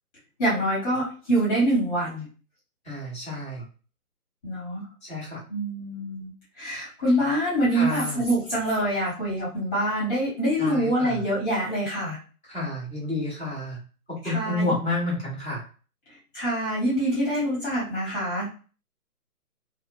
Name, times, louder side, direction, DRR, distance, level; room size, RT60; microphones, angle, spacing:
voice 1, 0.4-2.3 4.4-4.8 5.5-6.3 6.6-12.2 14.2-14.7 16.3-18.5, right 1 dB, 10° left, -9 dB, 1.1 m, -25 dB
voice 2, 2.8-3.6 5.0-5.4 7.7-8.2 10.6-11.2 12.5-13.8 14.1-15.6, left 2 dB, 5° right, -18 dB, 0.8 m, -30 dB
2.5 x 2.2 x 2.6 m, 0.35 s
figure-of-eight pair, 155°, 45 cm